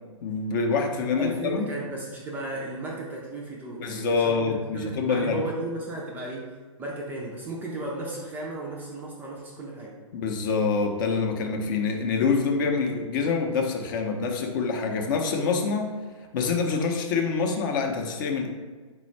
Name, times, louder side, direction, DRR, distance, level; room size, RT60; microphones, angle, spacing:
voice 1, 0.2-1.7 3.8-5.4 10.1-15.9 16.3-18.5, left 4 dB, 40° left, 2 dB, 0.6 m, -26 dB
voice 2, 1.2-6.5 6.8-10.0, right 2 dB, 10° right, -3 dB, 0.4 m, -34 dB
4.2 x 2.2 x 4.3 m, 1.4 s
figure-of-eight pair, 120°, 17 cm